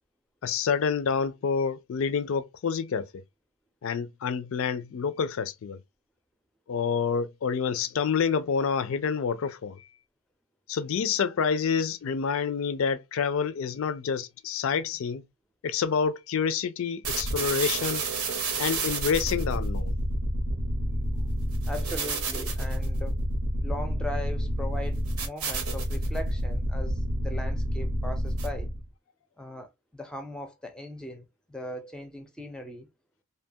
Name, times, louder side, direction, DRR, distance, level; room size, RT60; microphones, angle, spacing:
voice 1, 0.4-3.1 3.8-5.8 6.7-9.9 10.7-15.2 15.6-18.0 18.6-20.0, left 6 dB, 65° left, 0.4 m, -28 dB
sound 1, 17.0-28.8, right 1 dB, 80° right, 0.8 m, -29 dB
voice 2, 21.6-23.2 23.6-28.7 29.4-32.9, left 1 dB, 5° left, 0.5 m, -39 dB
2.7 x 2.2 x 2.7 m
head